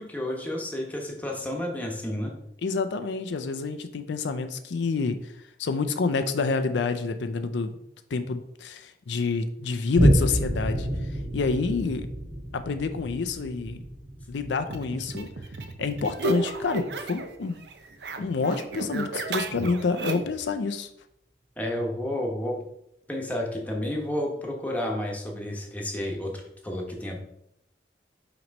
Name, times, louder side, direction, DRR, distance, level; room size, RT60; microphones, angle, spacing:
voice 1, 0.0-2.3 21.6-22.6 23.1-27.2, left 1 dB, 10° left, -1 dB, 1.0 m, -31 dB
voice 2, 2.6-5.3 5.6-7.7 8.1-10.9 11.3-12.1 12.5-13.8 14.3-15.3 15.8-17.6 18.2-20.9, left 4 dB, 80° left, 9 dB, 0.5 m, -28 dB
Boom, 9.9-16.9 17.4-17.5, equal, 55° right, 2.2 m, -28 dB
sound 1, 14.7-17.4 17.6-20.4, right 3 dB, 70° right, 0.7 m, -33 dB
5.9 x 3.1 x 5.2 m, 0.78 s
head